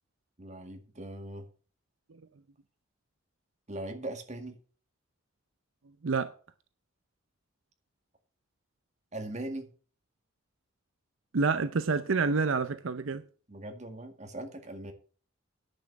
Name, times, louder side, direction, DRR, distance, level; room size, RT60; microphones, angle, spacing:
voice 1, 0.4-1.5 3.7-4.6 9.1-9.7 13.5-14.9, right 1 dB, 35° right, 1.9 m, -40 dB
voice 2, 11.3-13.2, right 4 dB, 75° right, 0.6 m, -28 dB
10.5 x 6.1 x 7.6 m
head